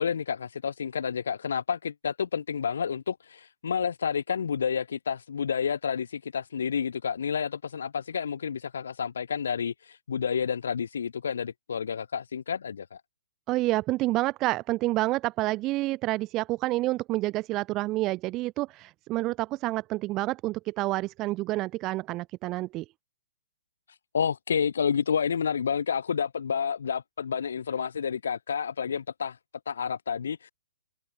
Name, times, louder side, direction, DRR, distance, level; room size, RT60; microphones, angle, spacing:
voice 1, 0.0-13.0 24.1-29.4 29.7-30.5, left 7 dB, 75° left, 3.1 m, -30 dB
voice 2, 13.5-22.8, right 18 dB, 20° right, 1.1 m, -28 dB
hypercardioid pair, 165°, 0 cm